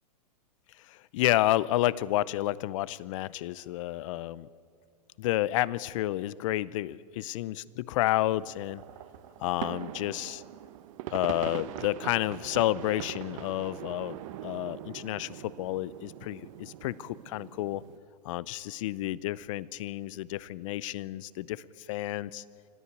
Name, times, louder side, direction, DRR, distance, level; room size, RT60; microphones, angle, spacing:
voice 1, 1.1-4.5 5.2-8.8 9.4-10.4 11.1-17.8 18.2-21.6 21.9-22.4, left 15 dB, 50° left, 21 dB, 0.6 m, -30 dB
sound 1, 8.3-18.0, right 13 dB, 50° right, 1.0 m, -42 dB
25.0 x 14.0 x 8.1 m, 2.4 s
hypercardioid pair, 120°, 21 cm